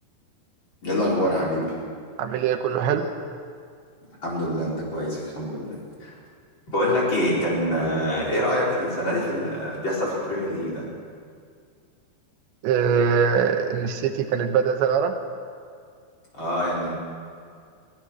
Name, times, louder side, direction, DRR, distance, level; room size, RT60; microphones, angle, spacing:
voice 1, 0.8-1.7 4.2-6.2 6.7-10.8 16.3-17.0, equal, 25° left, -5 dB, 5.3 m, -25 dB
voice 2, 2.2-3.1 12.6-15.1, right 7 dB, 80° right, 6 dB, 3.4 m, -22 dB
22.0 x 19.0 x 6.4 m, 2.2 s
omnidirectional pair, 5.1 m